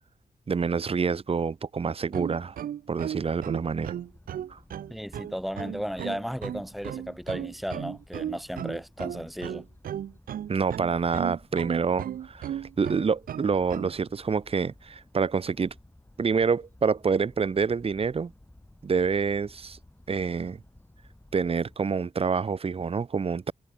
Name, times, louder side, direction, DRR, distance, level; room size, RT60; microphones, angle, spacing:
voice 1, 0.5-2.6 2.9-3.9 4.5-4.6 10.5-15.7 16.2-18.3 18.8-19.8 20.1-20.6 21.3-23.5, right 5 dB, 40° right, 0.7 m, -27 dB
sound 1, 2.0-13.9, right 10 dB, 85° right, 0.5 m, -35 dB
sound 2, 3.6-21.8, left 1 dB, 15° left, 7.8 m, -55 dB
voice 2, 4.9-9.7, equal, ahead, 0.7 m, -35 dB
cardioid pair, 75°, 14 cm